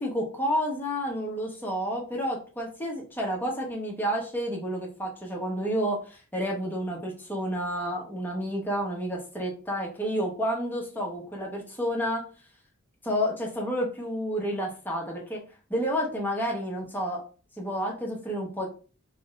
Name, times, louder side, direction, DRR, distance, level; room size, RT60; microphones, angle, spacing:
voice 1, 0.0-12.2 13.0-15.4 15.7-17.2 17.6-18.7, equal, 10° left, -2 dB, 0.9 m, -30 dB
3.2 x 2.6 x 3.9 m, 0.37 s
head